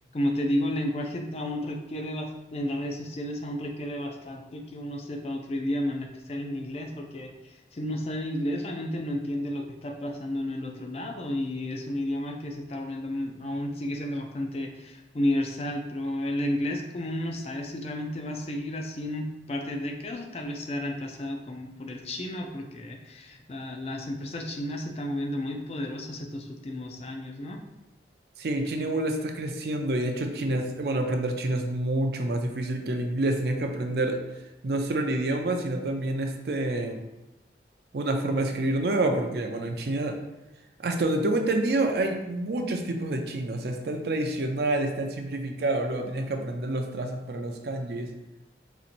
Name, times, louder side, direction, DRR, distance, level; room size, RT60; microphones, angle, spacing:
voice 1, 0.0-27.6, left 1 dB, 35° left, 3 dB, 0.4 m, -32 dB
voice 2, 28.4-34.2 34.6-37.0 37.9-40.2 40.8-48.1, right 2 dB, 65° right, 4 dB, 0.4 m, -28 dB
4.1 x 2.8 x 2.5 m, 0.98 s
head